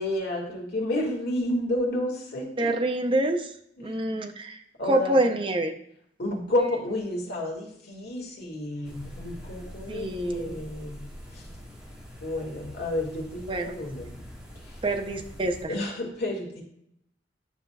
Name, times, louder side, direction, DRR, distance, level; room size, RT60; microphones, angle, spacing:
voice 1, 0.0-2.7 3.8-4.0 4.8-5.3 6.2-11.0 11.3-11.4 12.2-14.1 15.7-16.6, left 1 dB, 60° left, -1 dB, 2.0 m, -30 dB
voice 2, 2.6-3.5 3.8-4.6 4.8-5.7 9.9-10.6 13.5-13.8 14.8-15.7, right 1 dB, 30° right, 4 dB, 0.6 m, -26 dB
sound 1, 8.8-15.7, equal, 5° right, 1.5 m, -44 dB
9.8 x 5.5 x 2.3 m, 0.73 s
head